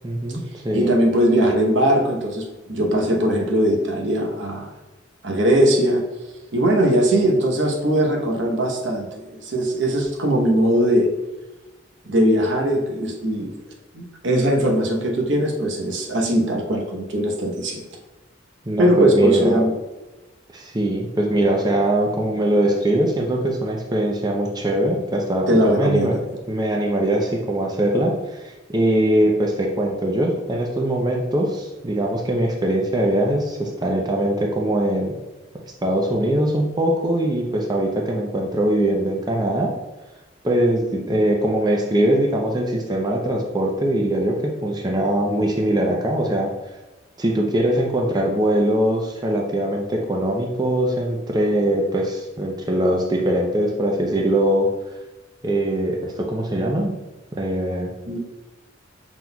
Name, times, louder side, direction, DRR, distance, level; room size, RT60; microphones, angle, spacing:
voice 1, 0.0-0.9 18.7-19.6 20.5-26.2 26.5-28.4 28.7-35.1 35.8-39.7 40.4-46.5 47.2-54.7 55.4-56.9 57.4-57.9, right 1 dB, 20° right, 0 dB, 0.5 m, -21 dB
voice 2, 0.7-4.7 5.2-6.0 6.5-11.1 12.0-13.5 13.9-17.8 18.8-19.7 25.5-26.2 58.1-58.2, equal, 75° right, 1 dB, 0.9 m, -20 dB
5.9 x 3.9 x 2.3 m, 1.1 s
head